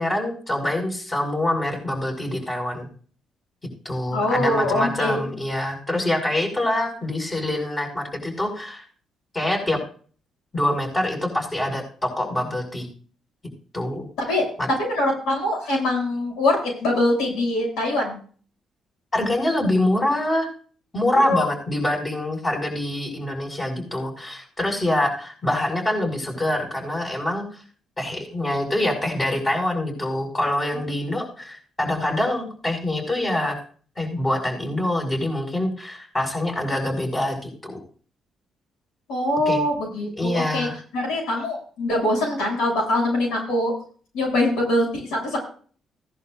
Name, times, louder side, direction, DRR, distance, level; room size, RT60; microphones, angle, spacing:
voice 1, 0.0-2.9 3.8-8.8 9.3-9.8 10.5-12.9 13.7-14.1 19.1-20.5 20.9-27.6 28.0-33.6 34.0-37.8 39.5-39.6 40.2-40.8, left 1 dB, 20° left, 2 dB, 5.9 m, -25 dB
voice 2, 4.1-5.2 14.2-14.5 14.8-18.2 21.1-21.5 30.8-30.9 39.1-40.7 40.9-43.7 44.1-45.4, left 1 dB, 90° left, 0 dB, 7.2 m, -23 dB
17.5 x 11.0 x 2.6 m, 0.43 s
cardioid pair, 90°, 0 cm